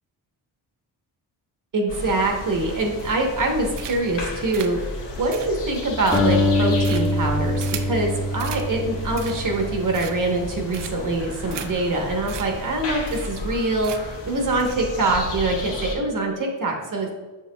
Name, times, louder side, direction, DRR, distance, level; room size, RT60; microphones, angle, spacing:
voice 1, 1.7-4.8 5.2-17.1, right 2 dB, 45° right, 1 dB, 1.0 m, -24 dB
sound 1, 1.9-15.9, left 2 dB, 80° left, 1.4 m, -34 dB
sound 2, 3.0-3.4 3.7-4.2 4.5-8.0 8.4-8.7 9.0-9.6 9.9-10.4 10.7-11.1 11.5-11.7 12.0-12.1 12.3-12.5 12.7-12.8 13.1-13.5 13.8-14.2 14.6-14.8, right 9 dB, 75° right, 0.6 m, -37 dB
Acoustic guitar, 6.1-10.6, left 1 dB, ahead, 0.9 m, -24 dB
6.9 x 6.6 x 2.2 m, 1.3 s
wide cardioid pair, 145°, 43 cm